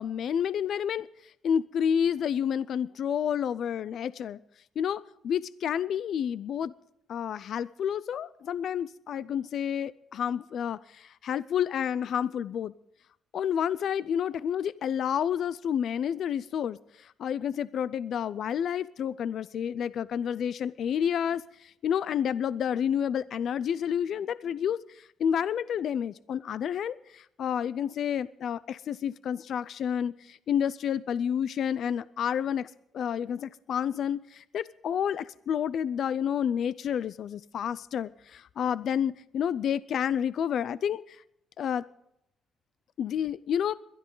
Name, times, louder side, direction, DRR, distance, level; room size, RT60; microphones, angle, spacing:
voice 1, 0.0-4.4 4.8-6.7 7.1-12.7 13.3-41.2 41.6-41.8 43.0-43.7, left 8 dB, 65° left, 18 dB, 0.4 m, -30 dB
22.0 x 12.5 x 3.9 m, 0.78 s
cardioid pair, 90°, 0 cm